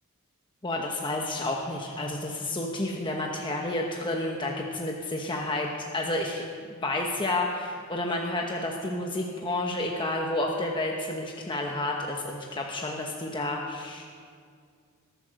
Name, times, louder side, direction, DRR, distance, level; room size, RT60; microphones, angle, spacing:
voice 1, 0.6-6.4 6.8-14.0, left 2 dB, 20° left, 0 dB, 1.1 m, -30 dB
21.5 x 8.8 x 6.4 m, 2.1 s
head